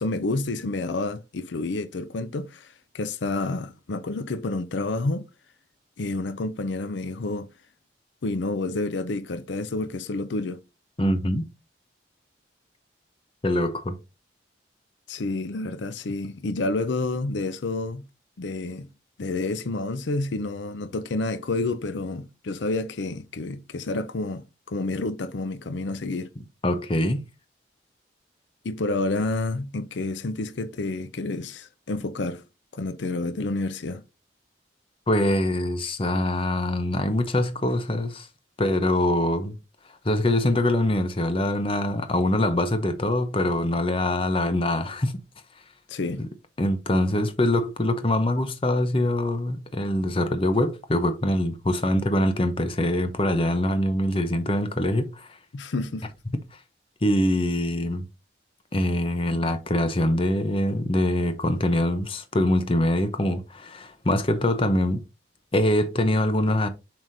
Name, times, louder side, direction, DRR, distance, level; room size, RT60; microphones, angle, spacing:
voice 1, 0.0-5.2 6.0-7.5 8.2-10.6 15.1-18.1 18.4-18.9 19.2-26.3 28.6-32.4 32.7-34.0 45.9-46.2 55.5-56.1, left 2 dB, 80° left, 0.6 m, -29 dB
voice 2, 11.0-11.5 13.4-14.0 26.6-27.2 35.1-38.3 38.6-39.6 40.0-45.2 46.2-46.3 46.6-55.4 56.3-56.4 57.0-58.1 58.7-65.0 65.5-66.7, left 1 dB, 30° left, 0.7 m, -24 dB
7.4 x 4.9 x 2.7 m
head